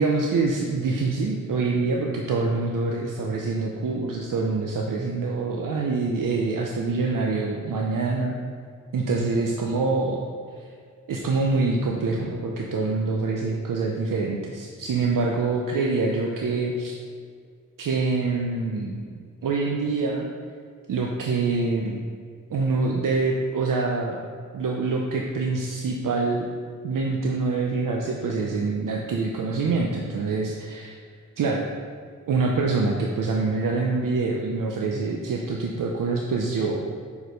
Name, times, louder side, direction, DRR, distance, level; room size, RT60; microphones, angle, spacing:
voice 1, 0.0-8.3 8.9-10.2 10.6-10.7 11.1-17.0 17.8-19.0 19.4-20.3 20.9-22.0 22.5-24.2 24.5-26.5 26.8-30.9 31.4-31.6 32.3-36.8, right 3 dB, 80° right, 0 dB, 0.7 m, -25 dB
6.5 x 4.8 x 5.2 m, 2.1 s
wide cardioid pair, 125°, 32 cm